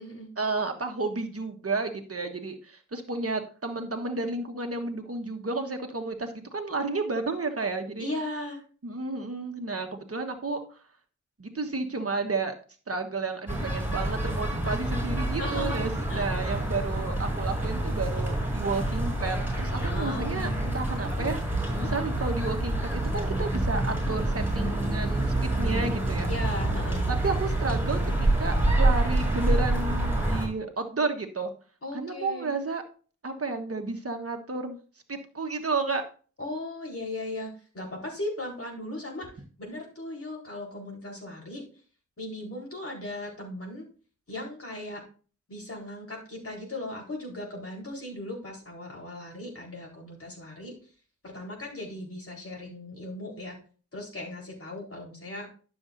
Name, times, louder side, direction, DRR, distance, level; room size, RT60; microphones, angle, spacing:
voice 1, 0.4-8.1 8.8-10.8 11.4-12.5 12.9-26.3 27.1-31.5 31.9-32.8 33.2-34.8 35.1-36.0, right 3 dB, 50° right, 4 dB, 1.3 m, -32 dB
voice 2, 8.0-8.6 15.4-15.8 16.1-16.3 19.8-20.7 21.7-21.9 26.3-27.0 31.8-32.5 36.4-39.3 39.6-41.6 42.2-43.9 44.3-45.0 45.5-50.8 51.2-53.6 53.9-55.5, left 1 dB, 50° left, -1 dB, 4.1 m, -37 dB
sound 1, 13.5-30.5, right 1 dB, 5° right, 5.1 m, -27 dB
11.5 x 7.0 x 2.6 m, 0.39 s
wide cardioid pair, 85°, 29 cm